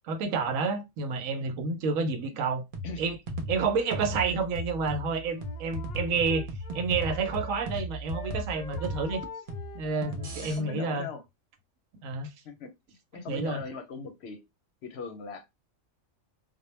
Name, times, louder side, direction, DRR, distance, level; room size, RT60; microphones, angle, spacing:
voice 1, 0.0-2.6 3.0-3.2 3.5-6.5 6.7-9.3 9.7-11.1 12.0-12.3 13.3-13.6, right 4 dB, 85° right, 1.0 m, -29 dB
sound 1, 2.7-10.6, equal, 50° right, 0.7 m, -36 dB
Wind instrument woodwind instrument, 5.2-7.8 8.1-10.9, left 3 dB, 90° left, 0.4 m, -46 dB
voice 2, 10.4-11.2 12.4-12.7 13.1-14.4 14.8-15.5, left 5 dB, 65° left, 0.7 m, -39 dB
2.1 x 2.1 x 3.0 m
omnidirectional pair, 1.3 m